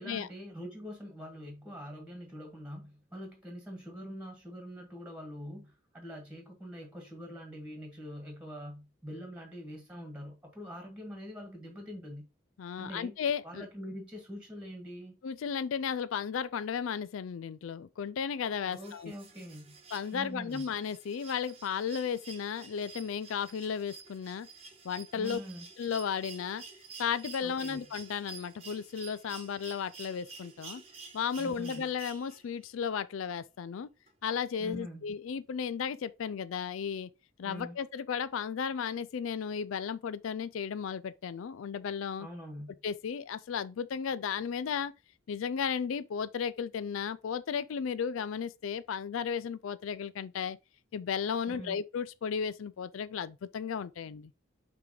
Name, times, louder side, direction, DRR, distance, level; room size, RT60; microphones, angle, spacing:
voice 1, 0.0-12.2 12.8-13.2 13.4-15.2 18.6-19.8 20.1-20.6 25.2-25.7 27.4-27.8 31.3-31.9 34.6-35.0 37.4-37.8 42.2-42.7 51.5-51.8, equal, 5° right, 1.7 m, -44 dB
voice 2, 12.6-13.7 15.2-19.1 19.9-24.5 24.8-25.4 25.8-26.6 27.0-30.8 31.1-33.9 34.2-37.1 37.4-42.3 42.8-44.9 45.3-50.6 50.9-54.3, left 7 dB, 75° left, 0.4 m, -34 dB
sound 1, 18.7-32.6 34.1-34.2, right 5 dB, 30° right, 1.1 m, -50 dB
5.8 x 3.3 x 5.0 m
head